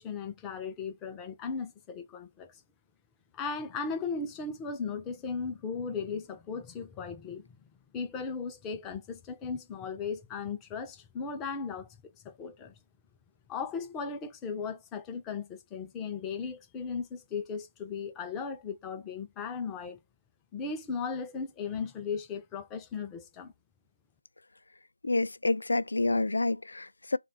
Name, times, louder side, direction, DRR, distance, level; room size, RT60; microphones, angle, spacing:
voice 1, 0.0-2.5 3.3-7.6 7.9-11.9 12.2-12.7 13.5-20.0 20.5-23.5, left 5 dB, 10° left, 0.3 m, -37 dB
voice 2, 25.0-27.2, left 2 dB, 85° left, 0.3 m, -28 dB
4.1 x 2.2 x 3.8 m
figure-of-eight pair, 175°, 0 cm